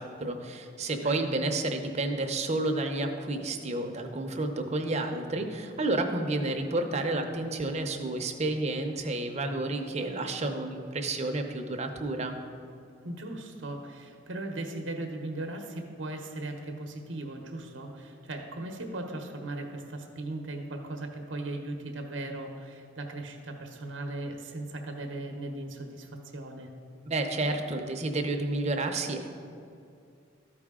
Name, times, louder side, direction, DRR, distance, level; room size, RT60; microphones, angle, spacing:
voice 1, 0.0-12.4 27.1-29.3, right 2 dB, 35° right, 4 dB, 0.7 m, -30 dB
voice 2, 0.9-1.3 13.0-26.7, right 2 dB, 75° right, 4 dB, 0.8 m, -38 dB
13.5 x 4.9 x 3.6 m, 2.5 s
head